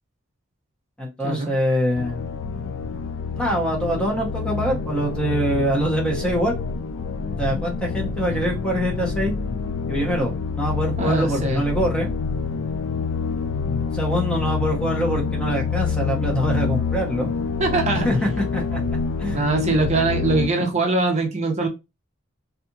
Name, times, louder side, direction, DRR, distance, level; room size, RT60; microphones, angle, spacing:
voice 1, 1.0-2.2 3.3-6.6 7.4-9.3 9.9-12.1 13.9-17.3 18.0-18.8 19.2-19.4, equal, 5° left, 0.6 m, -24 dB
sound 1, 2.0-20.5, left 5 dB, 75° left, 0.4 m, -27 dB
voice 2, 11.0-11.6 17.6-18.1 19.3-21.7, right 3 dB, 35° right, 0.6 m, -22 dB
2.7 x 2.3 x 2.5 m
head